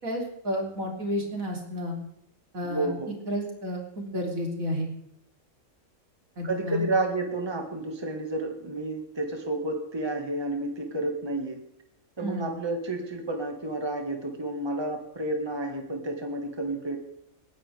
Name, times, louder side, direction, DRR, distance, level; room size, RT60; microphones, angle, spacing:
voice 1, 0.0-2.0 2.5-2.9 3.3-4.9 6.4-6.9 12.2-12.5, equal, 75° right, 0 dB, 3.8 m, -31 dB
voice 2, 2.6-3.1 6.4-11.6 12.2-17.0, right 2 dB, 20° right, 3 dB, 1.8 m, -30 dB
27.5 x 10.5 x 3.5 m, 0.78 s
omnidirectional pair, 1.4 m